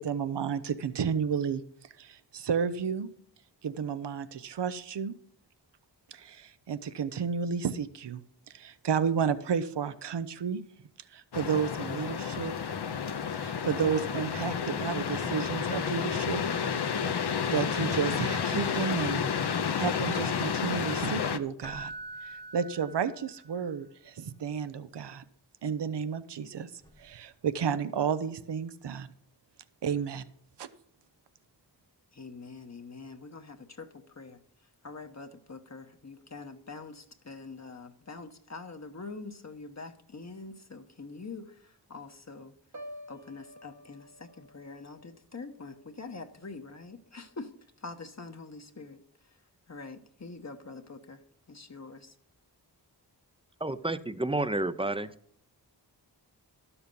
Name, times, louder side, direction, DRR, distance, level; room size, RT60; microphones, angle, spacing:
voice 1, 0.0-1.6 2.0-3.1 3.6-5.1 6.1-8.2 8.5-10.6 11.1-12.8 13.3-16.4 17.1-19.2 19.7-21.9 22.2-25.2 25.6-26.7 27.0-29.1 29.8-30.2 30.6-30.7, right 7 dB, 75° right, 0.7 m, -32 dB
sound 1, 11.3-21.4, left 7 dB, 70° left, 0.8 m, -31 dB
Keyboard (musical), 21.6-23.6 26.8-27.0, right 2 dB, 10° left, 1.0 m, -44 dB
voice 2, 32.1-42.5 43.1-47.5 47.8-49.4 49.7-52.1, left 3 dB, 40° left, 0.9 m, -45 dB
Piano, 42.7-46.7 47.1-47.5, equal, 45° right, 1.1 m, -51 dB
voice 3, 53.6-55.1, right 2 dB, 15° right, 0.6 m, -30 dB
12.5 x 7.1 x 5.3 m
wide cardioid pair, 70°, 41 cm